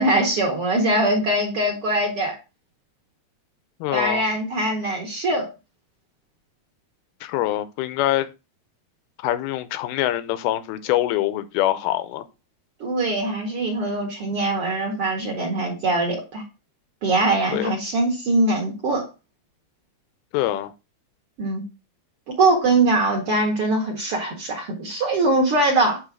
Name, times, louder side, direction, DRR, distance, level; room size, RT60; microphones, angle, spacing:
voice 1, 0.0-2.4 3.9-5.5 12.8-16.4 17.0-19.1 21.4-21.6 22.3-26.0, right 2 dB, 50° right, 1.9 m, -22 dB
voice 2, 3.8-4.2 7.2-8.3 9.2-12.2 17.5-17.7 20.3-20.7, left 14 dB, 85° left, 2.6 m, -24 dB
9.0 x 3.5 x 6.0 m
omnidirectional pair, 4.5 m